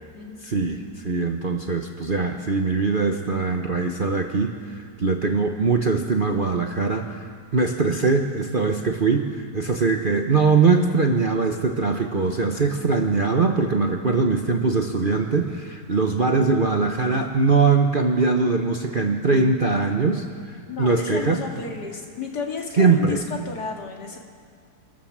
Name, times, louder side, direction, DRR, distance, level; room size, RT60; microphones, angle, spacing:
voice 1, 0.4-21.4 22.8-23.2, right 4 dB, 40° right, 3 dB, 0.9 m, -22 dB
voice 2, 20.7-24.2, left 5 dB, 65° left, 1 dB, 2.6 m, -32 dB
27.0 x 13.5 x 7.3 m, 2.2 s
omnidirectional pair, 1.9 m